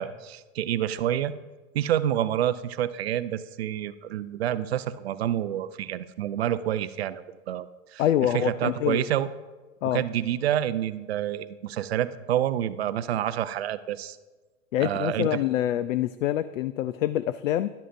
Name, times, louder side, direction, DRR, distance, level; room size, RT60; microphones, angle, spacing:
voice 1, 0.0-1.3 1.7-8.0 8.3-9.3 9.8-14.2 14.8-15.4, right 11 dB, 50° right, 13 dB, 0.5 m, -28 dB
voice 2, 8.0-9.1 9.8-10.0 14.7-17.7, left 12 dB, 65° left, 14 dB, 0.5 m, -26 dB
13.0 x 11.5 x 2.6 m, 1.2 s
hypercardioid pair, 160°, 43 cm